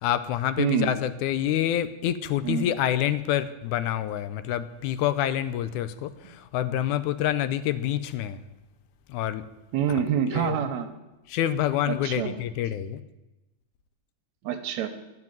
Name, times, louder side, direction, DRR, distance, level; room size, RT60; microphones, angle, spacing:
voice 1, 0.0-8.4 9.1-9.4 10.3-10.6 11.3-13.0, left 11 dB, 90° left, 13 dB, 2.1 m, -27 dB
voice 2, 0.6-0.9 2.4-2.7 9.7-10.9 11.9-12.4 14.4-14.9, right 8 dB, 75° right, 8 dB, 2.0 m, -26 dB
12.0 x 6.0 x 8.9 m, 1.0 s
omnidirectional pair, 3.5 m